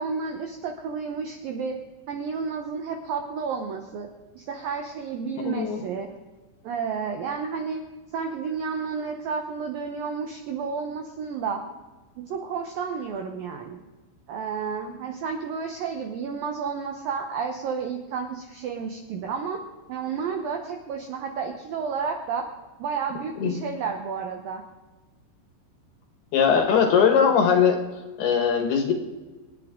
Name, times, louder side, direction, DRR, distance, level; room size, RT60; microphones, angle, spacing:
voice 1, 0.0-1.8 2.1-4.1 4.3-6.1 6.6-7.8 8.1-11.6 12.2-13.8 14.3-19.6 19.9-22.5 22.8-24.6, right 5 dB, 75° right, 3 dB, 2.1 m, -31 dB
voice 2, 5.5-5.8 23.4-23.5 26.3-27.8 28.2-28.9, left 7 dB, 65° left, 4 dB, 3.2 m, -20 dB
27.5 x 9.9 x 3.8 m, 1.2 s
omnidirectional pair, 5.5 m